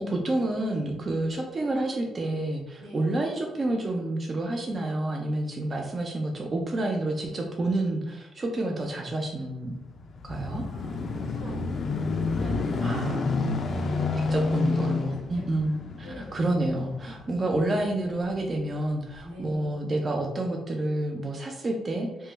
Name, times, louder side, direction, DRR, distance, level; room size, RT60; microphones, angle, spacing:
voice 1, 0.0-9.8 10.2-10.6 12.8-13.3 14.2-22.3, right 2 dB, 35° right, 1 dB, 0.4 m, -29 dB
voice 2, 2.8-3.2 10.4-15.6 16.0-16.2 19.2-19.8, left 1 dB, 85° right, -4 dB, 1.3 m, -43 dB
sound 1, 9.7-18.5 19.1-19.2, left 3 dB, 50° left, 0.4 m, -30 dB
3.0 x 2.2 x 3.3 m, 1.0 s
cardioid pair, 90°, 0 cm